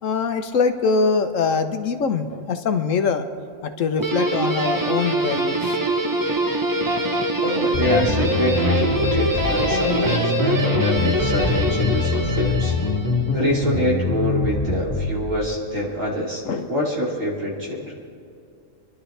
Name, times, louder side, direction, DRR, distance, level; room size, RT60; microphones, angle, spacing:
voice 1, 0.0-3.3 3.6-5.8 16.5-16.7, left 5 dB, 75° left, 8 dB, 1.3 m, -23 dB
Guitar, 4.0-13.3, right 1 dB, 15° right, 0.9 m, -24 dB
voice 2, 7.4-12.7 13.3-16.4 16.7-17.9, equal, 80° right, -4 dB, 3.5 m, -25 dB
sound 1, 7.7-15.1, left 3 dB, 15° left, 2.4 m, -23 dB
28.0 x 11.5 x 3.4 m, 2.4 s
omnidirectional pair, 1.3 m